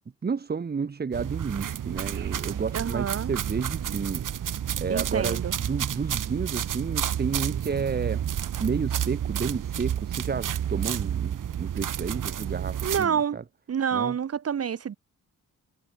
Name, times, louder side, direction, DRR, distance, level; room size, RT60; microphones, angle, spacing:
voice 1, 0.2-4.3 4.8-8.2 8.6-13.4 13.9-14.2, right 5 dB, 30° right, 2.1 m, -31 dB
sound 1, 1.1-13.1, right 9 dB, 70° right, 5.5 m, -30 dB
voice 2, 2.7-3.3 4.9-5.5 12.8-13.4 13.7-15.0, right 8 dB, 45° right, 1.6 m, -28 dB
wide cardioid pair, 165°, 33 cm